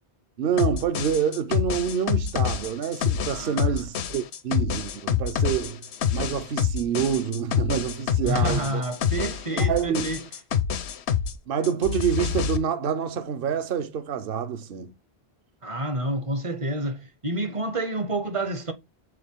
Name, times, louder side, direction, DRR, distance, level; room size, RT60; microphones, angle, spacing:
voice 1, 0.4-5.8 6.1-8.9 9.5-10.2 11.5-14.9, right 8 dB, 60° right, 0.9 m, -27 dB
sound 1, 0.6-11.4 11.6-12.6, left 8 dB, 90° left, 1.0 m, -26 dB
voice 2, 3.3-3.8 8.2-10.2 15.6-18.7, right 1 dB, 40° right, 0.6 m, -29 dB
6.6 x 4.0 x 3.5 m
omnidirectional pair, 1.1 m